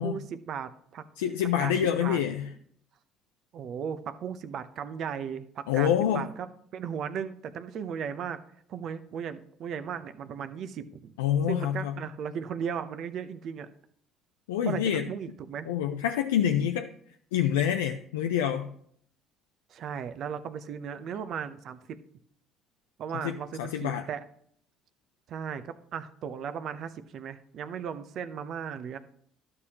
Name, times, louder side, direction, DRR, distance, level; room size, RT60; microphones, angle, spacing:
voice 1, 0.0-1.0 1.6-2.2 3.5-6.5 6.7-8.4 8.7-11.1 11.5-13.7 14.7-15.7 19.7-22.0 23.0-24.2 25.3-29.0, right 7 dB, 60° right, 0.7 m, -36 dB
voice 2, 1.2-2.5 5.7-6.3 11.2-11.9 14.5-15.1 15.7-16.9 17.3-18.7 23.2-24.1, left 9 dB, 90° left, 0.4 m, -27 dB
12.0 x 6.6 x 2.9 m
hypercardioid pair, 65°, 0 cm